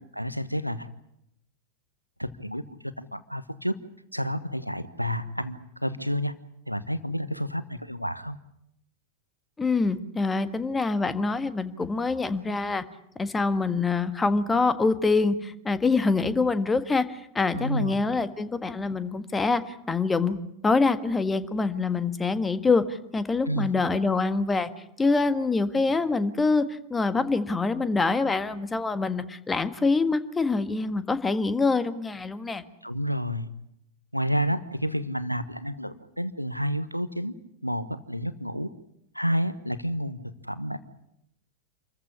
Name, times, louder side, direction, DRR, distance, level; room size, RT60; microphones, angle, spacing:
voice 1, 0.2-0.9 2.2-3.7 4.1-6.3 6.7-8.4 17.5-17.9 23.5-23.7 32.8-33.5 34.1-37.3 37.6-38.7 39.1-40.8, equal, 90° right, 13 dB, 1.2 m, -30 dB
voice 2, 9.6-12.8 13.1-20.4 20.6-22.8 23.1-24.7 25.0-32.6, left 3 dB, 15° left, 12 dB, 1.6 m, -25 dB
27.5 x 15.0 x 9.8 m, 0.79 s
figure-of-eight pair, 90°, 0 cm